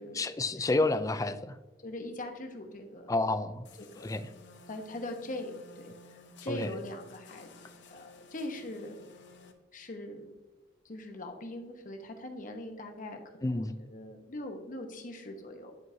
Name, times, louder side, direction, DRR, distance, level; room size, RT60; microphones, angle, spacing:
voice 1, 0.2-1.6 3.1-3.7 4.0-4.2 6.5-6.7 13.4-13.8, left 2 dB, 20° left, 12 dB, 0.4 m, -29 dB
voice 2, 1.8-3.2 3.8-4.2 4.7-5.9 6.4-9.0 9.7-10.3 10.8-15.7, left 1 dB, 50° left, 4 dB, 1.0 m, -41 dB
sound 1, 3.6-9.5, left 3 dB, 75° left, 0.8 m, -54 dB
10.5 x 4.7 x 2.7 m, 1.2 s
head